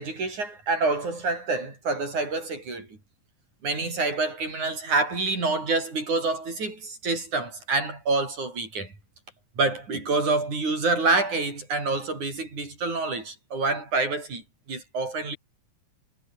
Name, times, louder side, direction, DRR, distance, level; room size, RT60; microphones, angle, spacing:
voice 1, 0.0-2.9 3.6-8.9 9.6-14.4 14.7-15.4, right 3 dB, 70° right, 9.4 m, -27 dB
omnidirectional pair, 3.5 m